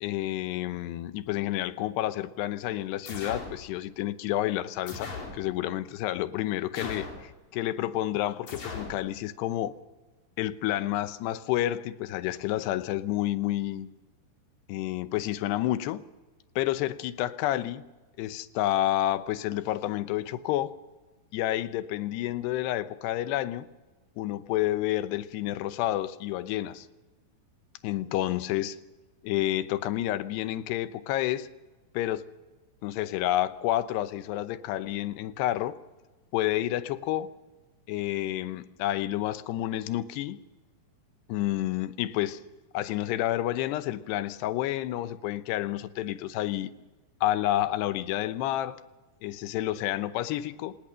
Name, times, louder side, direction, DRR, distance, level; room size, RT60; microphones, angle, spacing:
voice 1, 0.0-9.7 10.4-13.9 14.7-16.1 16.6-17.9 18.2-20.7 21.3-23.7 24.2-26.9 27.8-28.8 29.2-31.5 31.9-32.3 32.8-35.8 36.3-37.3 37.9-40.4 41.3-42.4 42.7-46.7 47.2-48.8 49.2-50.8, left 14 dB, 85° left, 3.0 m, -29 dB
sound 1, 3.1-3.6 4.9-5.4 6.7-7.3 8.5-9.0, left 3 dB, 55° left, 5.8 m, -38 dB
26.0 x 19.0 x 6.4 m
omnidirectional pair, 4.8 m